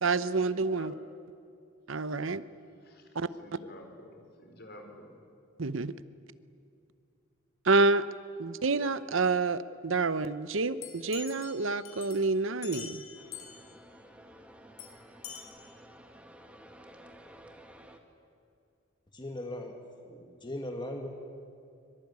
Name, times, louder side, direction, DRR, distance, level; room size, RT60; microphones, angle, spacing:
voice 1, 0.0-0.9 1.9-2.4 3.1-3.3 5.6-5.9 7.6-8.0 8.4-13.0, right 3 dB, 70° right, 14 dB, 0.9 m, -28 dB
voice 2, 3.4-5.2, left 1 dB, 50° left, 4 dB, 4.8 m, -50 dB
sound 1, 10.8-13.7 14.8-14.9 15.2-15.4, left 8 dB, 85° left, 4.8 m, -45 dB
sound 2, 13.1-18.0, equal, 5° right, 1.9 m, -53 dB
voice 3, 19.1-19.7 20.0-21.1, left 1 dB, 20° left, 3 dB, 1.8 m, -38 dB
24.5 x 23.5 x 9.6 m, 2.5 s
head